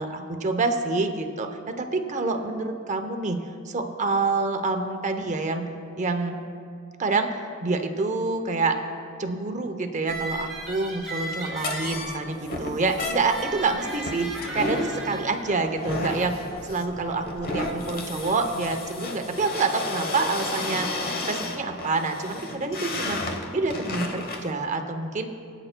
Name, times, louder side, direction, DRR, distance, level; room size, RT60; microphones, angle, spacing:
voice 1, 0.0-3.4 3.7-5.7 6.0-6.4 7.0-8.8 9.2-16.4 16.7-20.9 21.3-23.2 23.5-25.3, right 3 dB, 35° right, 6 dB, 0.7 m, -27 dB
sound 1, 10.1-18.7, right 1 dB, 5° right, 2.7 m, -38 dB
sound 2, 11.6-24.5, left 2 dB, 45° left, 1.0 m, -32 dB
23.5 x 8.9 x 2.2 m, 2.4 s
head